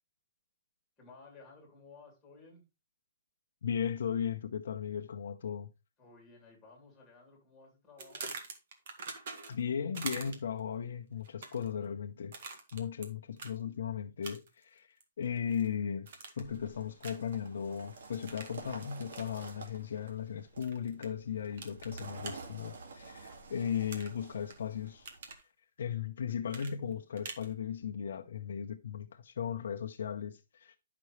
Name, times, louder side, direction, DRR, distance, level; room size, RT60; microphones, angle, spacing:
voice 1, 1.0-2.6 6.0-8.3, left 3 dB, 5° left, 3.4 m, -56 dB
voice 2, 3.6-5.7 9.1-9.2 9.5-12.3 12.7-16.1 16.4-25.1 25.8-30.8, left 8 dB, 60° left, 0.8 m, -37 dB
sound 1, 8.0-9.6 9.9-10.6 11.2-11.7 12.3-13.1 13.4-13.5 14.2-14.6 15.0-15.7 16.1-16.5 17.0-17.3 18.3-18.6 19.1-19.3 20.6-21.1 21.6-22.3 23.9-24.5 24.9-25.4 26.5-27.5, right 4 dB, 45° right, 1.7 m, -44 dB
sound 2, 16.4-25.3, right 3 dB, 70° right, 2.3 m, -50 dB
10.5 x 6.1 x 3.3 m
hypercardioid pair, 175°, 0 cm